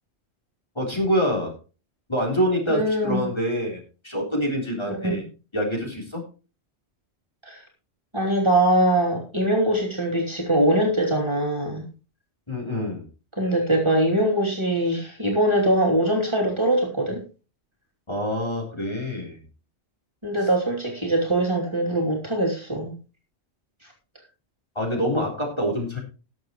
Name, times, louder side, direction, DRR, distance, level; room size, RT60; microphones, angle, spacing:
voice 1, 0.8-1.5 2.1-5.2 5.5-6.2 12.5-13.1 18.1-19.4 24.8-26.0, equal, 25° left, -1 dB, 3.8 m, -26 dB
voice 2, 2.7-3.3 4.9-5.2 7.4-7.6 8.1-11.8 13.4-17.2 20.2-23.0, right 1 dB, 25° right, -2 dB, 3.0 m, -22 dB
19.5 x 7.3 x 3.1 m, 0.33 s
omnidirectional pair, 1.1 m